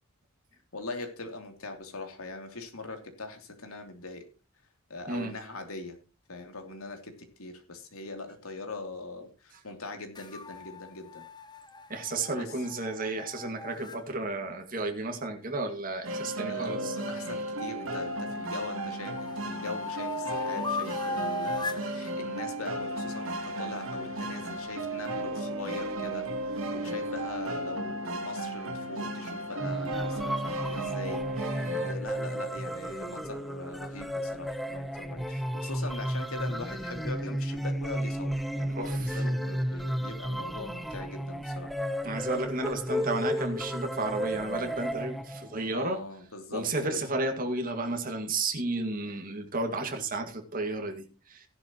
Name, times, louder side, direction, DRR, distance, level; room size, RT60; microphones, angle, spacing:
voice 1, 0.7-4.3 4.9-6.0 6.3-11.2 12.3-12.5 16.4-41.7 45.7-47.0, left 3 dB, 80° left, 5 dB, 2.9 m, -41 dB
sound 1, 10.2-14.0 16.9-18.2 18.7-21.9, left 4 dB, 20° left, 1.0 m, -38 dB
voice 2, 11.9-17.0 38.7-39.2 42.0-46.0 46.5-51.5, right 2 dB, 40° right, 4 dB, 2.0 m, -32 dB
sound 2, 16.0-32.0, right 1 dB, 70° right, 2.6 m, -34 dB
sound 3, 29.6-45.6, equal, ahead, 0.6 m, -33 dB
15.5 x 11.5 x 3.0 m, 0.31 s
head